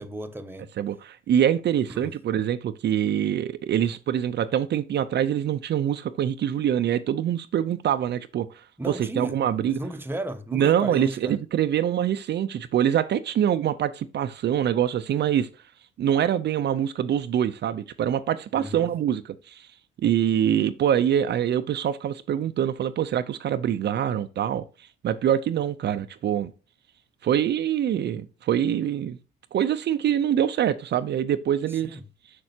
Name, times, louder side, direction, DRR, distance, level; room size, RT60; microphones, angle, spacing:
voice 1, 0.0-0.7 1.9-2.2 8.8-9.4 9.6-11.4 18.5-19.0 31.8-32.0, right 1 dB, 10° right, 0.9 m, -34 dB
voice 2, 0.8-9.8 10.5-15.5 16.0-19.7 20.0-26.5 27.2-29.2 29.5-32.0, right 10 dB, 60° right, 0.6 m, -24 dB
6.8 x 6.5 x 2.8 m
cardioid pair, 90°, 20 cm